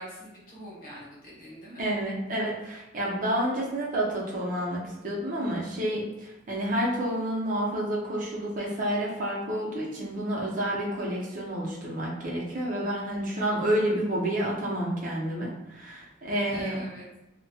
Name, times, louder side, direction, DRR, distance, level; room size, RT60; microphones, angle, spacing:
voice 1, 0.0-1.9 16.3-17.1, equal, 50° left, -6 dB, 1.0 m, -43 dB
voice 2, 1.8-16.8, right 1 dB, 45° right, -4 dB, 0.6 m, -29 dB
2.8 x 2.1 x 2.2 m, 0.97 s
head